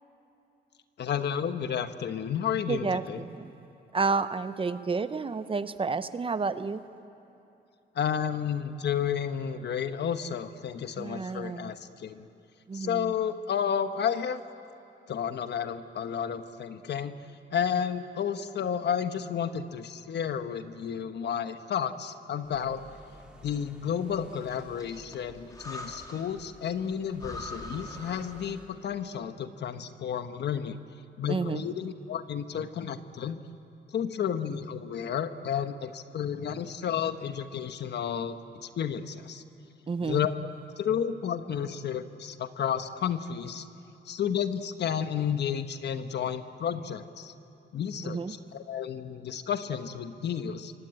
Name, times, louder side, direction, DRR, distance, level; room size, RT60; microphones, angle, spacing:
voice 1, 1.0-3.2 7.9-12.3 12.7-14.4 15.1-17.1 17.5-22.8 23.4-30.8 31.2-33.4 33.9-39.4 40.0-40.3 40.8-43.6 44.0-47.3 47.7-50.7, left 8 dB, 65° left, 9 dB, 1.2 m, -31 dB
voice 2, 2.7-3.5 3.9-6.8 11.0-11.7 12.7-13.1 31.3-31.7 39.9-40.2 48.0-48.3, right 4 dB, 30° right, 12 dB, 0.8 m, -30 dB
sound 1, 22.4-28.7, right 1 dB, 5° right, 3.7 m, -54 dB
Breathing, 24.3-26.5 26.8-26.9 27.2-28.9, left 1 dB, 20° left, 2.9 m, -43 dB
27.0 x 24.5 x 9.1 m, 2.8 s
cardioid pair, 130°, 19 cm